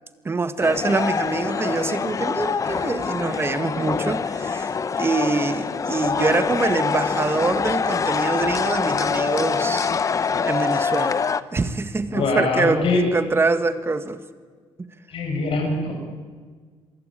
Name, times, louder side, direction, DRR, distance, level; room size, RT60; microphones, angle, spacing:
voice 1, 0.2-4.7 5.0-9.9 10.2-14.2, right 3 dB, 25° right, 10 dB, 1.7 m, -25 dB
sound 1, 0.6-11.4, left 5 dB, 30° left, 0.9 m, -24 dB
voice 2, 12.1-13.0 15.1-16.1, left 3 dB, 60° left, 3 dB, 7.7 m, -23 dB
28.0 x 23.0 x 9.1 m, 1.5 s
cardioid pair, 130°, 11 cm